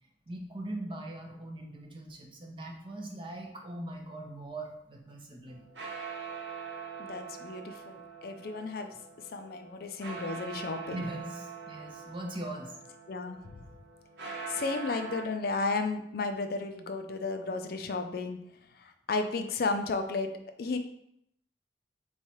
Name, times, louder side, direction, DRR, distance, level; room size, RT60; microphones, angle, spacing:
voice 1, 0.3-5.6 10.9-12.7, right 1 dB, 30° right, 1 dB, 0.6 m, -40 dB
sound 1, 5.5-15.2, right 5 dB, 80° right, 0.9 m, -43 dB
voice 2, 7.0-8.9 9.3-11.1 13.1-13.6 14.5-18.4 18.8-20.3 20.6-20.8, left 3 dB, 55° left, 7 dB, 0.4 m, -33 dB
3.6 x 3.2 x 4.2 m, 0.73 s
head